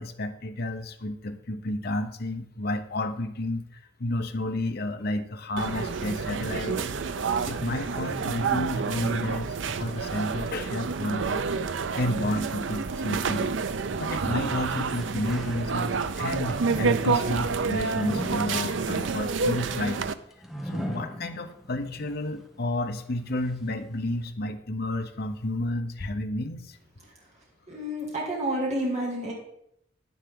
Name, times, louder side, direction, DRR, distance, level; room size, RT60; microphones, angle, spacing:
voice 1, 0.0-6.8 7.4-11.5 11.9-13.6 14.0-20.1 20.6-26.8, left 1 dB, 55° left, 6 dB, 0.9 m, -31 dB
sound 1, 5.6-20.1, right 5 dB, 85° right, 0.5 m, -29 dB
sound 2, 14.5-16.1 16.6-21.9 22.3-22.4 23.3-23.4, equal, ahead, 1.0 m, -39 dB
voice 2, 27.7-29.3, right 1 dB, 40° right, -3 dB, 2.5 m, -29 dB
10.5 x 9.8 x 3.8 m, 0.75 s
head